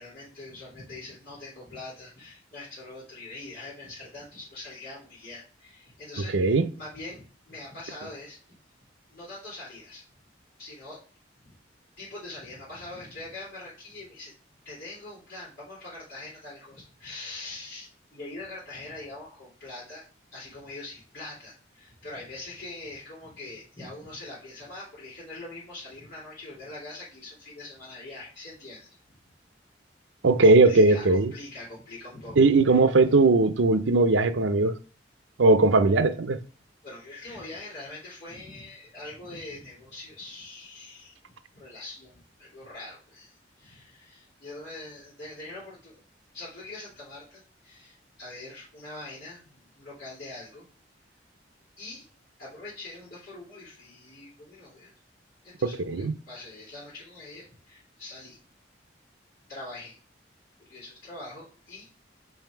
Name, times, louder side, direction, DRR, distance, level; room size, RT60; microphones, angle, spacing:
voice 1, 0.0-8.4 9.1-10.0 10.6-11.0 11.4-11.5 12.0-14.3 14.6-20.1 20.3-29.0 30.4-32.8 36.8-46.0 46.3-50.6 51.8-52.1 52.4-54.9 55.4-58.4 59.5-60.0 60.6-62.0, left 2 dB, 55° left, 3.3 m, -43 dB
voice 2, 6.3-6.7 30.2-31.3 32.4-34.7 35.4-36.4 55.6-56.1, right 3 dB, 85° right, 0.6 m, -19 dB
5.7 x 4.9 x 4.6 m
head